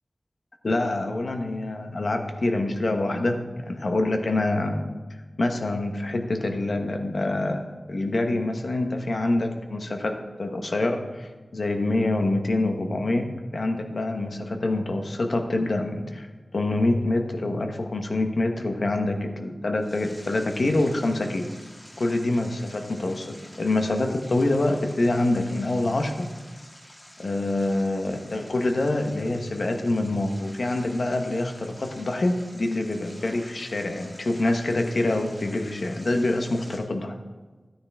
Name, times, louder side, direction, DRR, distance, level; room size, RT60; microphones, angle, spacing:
voice 1, 0.6-4.9 5.4-13.3 13.5-16.3 16.5-21.5 22.0-26.3 27.2-37.2, left 2 dB, 70° left, 4 dB, 1.2 m, -26 dB
sound 1, 19.8-36.8, left 1 dB, 30° left, 3.0 m, -49 dB
13.5 x 9.2 x 3.6 m, 1.3 s
wide cardioid pair, 65°, 0 cm